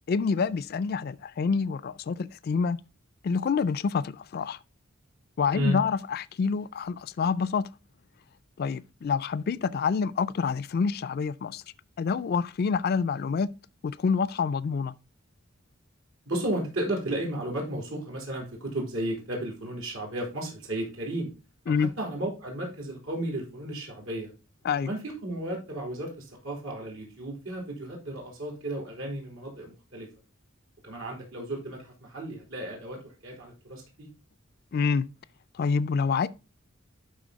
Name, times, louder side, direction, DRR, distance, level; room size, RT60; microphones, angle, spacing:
voice 1, 0.1-2.8 3.2-4.6 5.4-7.7 8.6-11.6 12.0-13.5 13.8-14.9 21.7-21.9 24.6-24.9 34.7-35.1 35.5-36.3, left 5 dB, 50° left, 0.3 m, -27 dB
voice 2, 16.3-21.3 21.8-24.3 24.8-30.1 30.8-34.1, right 1 dB, 85° right, 3.5 m, -34 dB
11.5 x 4.1 x 3.9 m
head